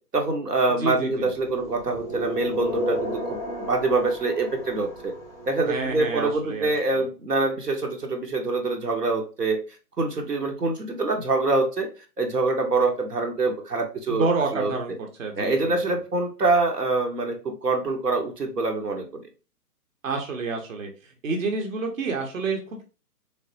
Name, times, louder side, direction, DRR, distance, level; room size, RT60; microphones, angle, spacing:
voice 1, 0.1-5.1 5.5-9.6 10.0-11.9 12.2-14.7 15.4-19.1, right 3 dB, 80° right, 2 dB, 1.1 m, -25 dB
voice 2, 0.8-1.3 5.6-7.0 14.1-14.9 15.2-16.0 20.0-20.9 21.2-22.8, right 3 dB, 55° right, 2 dB, 1.0 m, -29 dB
sound 1, 1.2-6.2, equal, 5° right, 0.6 m, -33 dB
3.5 x 3.3 x 2.7 m, 0.33 s
figure-of-eight pair, 135°, 47 cm